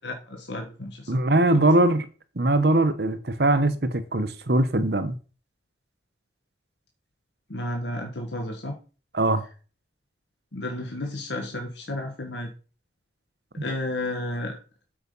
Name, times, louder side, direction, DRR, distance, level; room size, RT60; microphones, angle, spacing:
voice 1, 0.0-1.1 1.5-1.7 7.5-8.8 10.5-12.5 13.6-14.6, left 1 dB, 75° left, 1.7 m, -32 dB
voice 2, 1.1-2.1 2.4-5.1 9.1-9.4, right 2 dB, 60° right, 1.1 m, -21 dB
8.4 x 6.0 x 5.5 m
head